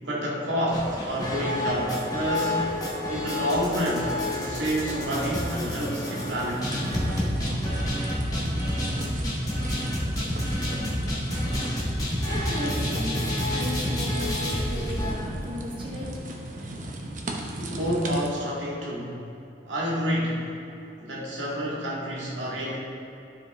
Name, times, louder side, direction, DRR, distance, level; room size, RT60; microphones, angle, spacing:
voice 1, 0.0-6.7 17.5-19.2 19.7-20.5 21.0-22.8, equal, 85° right, -5 dB, 2.0 m, -29 dB
sound 1, 0.7-15.1, left 1 dB, 20° left, 1.3 m, -29 dB
sound 2, 6.1-18.3, right 1 dB, 45° right, 0.8 m, -36 dB
voice 2, 12.1-13.2 13.5-16.1, equal, 30° right, -5 dB, 1.1 m, -35 dB
12.5 x 4.9 x 3.5 m, 2.8 s
head